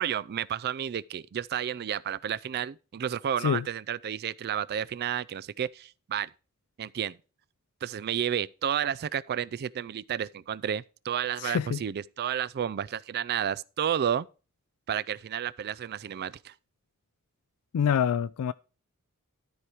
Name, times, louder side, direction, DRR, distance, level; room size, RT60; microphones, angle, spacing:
voice 1, 0.0-6.3 6.8-7.2 7.8-14.3 14.9-16.5, right 9 dB, 50° right, 0.3 m, -31 dB
voice 2, 11.4-11.8 17.7-18.5, left 8 dB, 85° left, 0.3 m, -26 dB
12.5 x 4.9 x 4.5 m
head